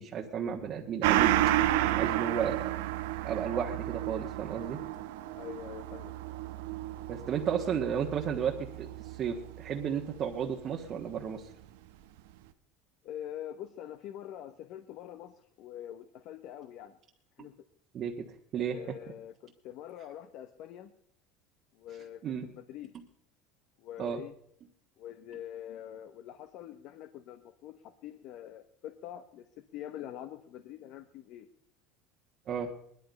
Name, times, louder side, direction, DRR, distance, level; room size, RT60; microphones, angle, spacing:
voice 1, 0.0-1.3 1.9-2.7 3.2-4.8 7.1-11.5 17.4-17.5 17.9-18.3 18.5-19.0 22.2-22.5 24.0-24.2 32.5-32.7, right 7 dB, 45° right, 0 dB, 1.4 m, -33 dB
Gong, 1.0-10.0 10.3-10.4, right 14 dB, 85° right, 0.9 m, -31 dB
voice 2, 5.4-6.1 13.0-17.0 17.4-17.5 18.7-20.9 21.7-22.9 23.8-24.3 25.0-31.5, left 11 dB, 60° left, 10 dB, 1.0 m, -45 dB
19.5 x 12.0 x 5.3 m, 0.71 s
supercardioid pair, 115°, 0 cm